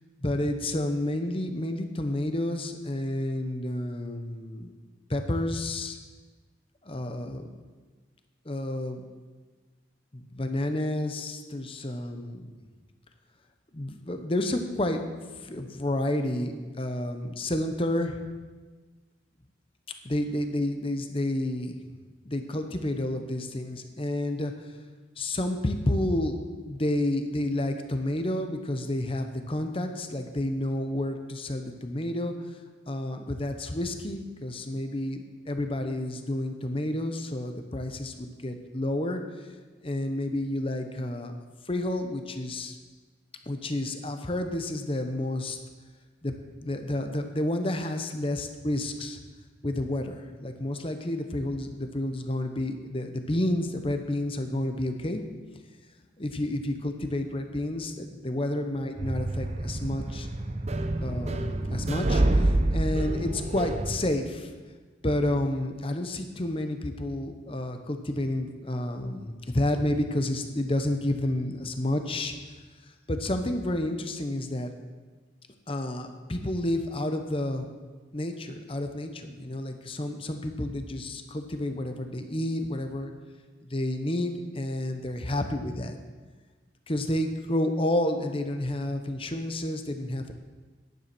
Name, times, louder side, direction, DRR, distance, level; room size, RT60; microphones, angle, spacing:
voice 1, 0.2-4.7 5.1-6.0 6.8-7.5 8.4-9.0 10.1-12.5 13.7-15.0 15.4-18.2 20.0-21.7 22.2-24.5 25.2-32.3 32.9-39.2 39.8-41.3 41.7-42.8 43.5-45.6 46.2-49.2 49.6-55.2 56.2-60.3 61.0-64.5 65.0-72.4 73.1-74.7 75.7-77.7 78.1-83.1 83.6-86.0 86.9-90.3, left 1 dB, 30° left, 6 dB, 0.9 m, -30 dB
sound 1, 59.0-64.0, right 1 dB, 35° right, 0.7 m, -27 dB
10.5 x 9.7 x 6.1 m, 1.3 s
head